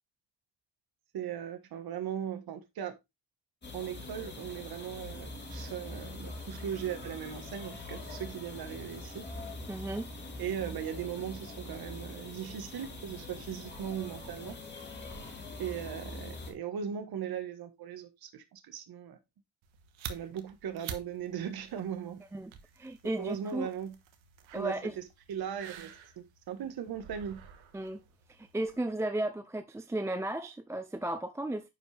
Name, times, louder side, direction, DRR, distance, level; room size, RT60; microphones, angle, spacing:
voice 1, 1.1-2.9 3.7-9.3 10.4-14.6 15.6-19.2 20.1-22.2 23.2-23.9 24.5-25.0 25.3-25.9 26.2-27.4, right 9 dB, 50° right, 1.4 m, -38 dB
sound 1, 3.6-16.5, left 2 dB, 20° left, 2.6 m, -43 dB
voice 2, 9.7-10.1 22.3-23.7 24.5-25.0 27.7-28.0 28.3-31.7, right 1 dB, 5° right, 0.4 m, -35 dB
sound 2, 19.6-28.8, right 7 dB, 80° right, 1.5 m, -49 dB
10.0 x 5.3 x 3.3 m
cardioid pair, 145°, 46 cm